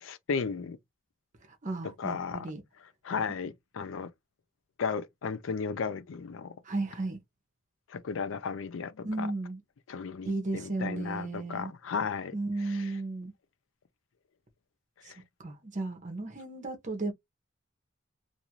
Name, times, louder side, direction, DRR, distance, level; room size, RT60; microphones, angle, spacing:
voice 1, 0.0-0.8 1.8-2.5 3.0-4.1 4.8-6.6 7.9-9.3 9.9-13.0 15.0-15.2, left 5 dB, 75° left, 0.4 m, -35 dB
voice 2, 1.6-2.6 6.6-7.2 9.0-9.6 10.3-11.7 12.3-13.3 15.4-17.1, right 2 dB, 40° right, 0.8 m, -34 dB
2.6 x 2.4 x 2.9 m
head